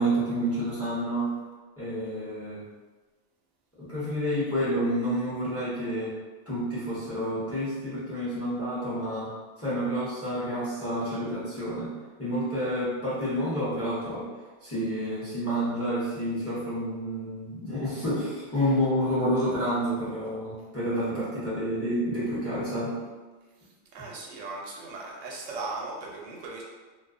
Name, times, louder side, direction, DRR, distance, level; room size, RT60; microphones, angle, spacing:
voice 1, 0.0-1.3 1.8-2.6 3.8-6.1 6.5-9.3 9.6-11.9 12.2-14.2 14.6-22.9, equal, 15° left, -10 dB, 0.6 m, -29 dB
voice 2, 23.9-26.6, right 3 dB, 90° right, -2 dB, 0.9 m, -37 dB
2.3 x 2.2 x 2.4 m, 1.3 s
omnidirectional pair, 1.2 m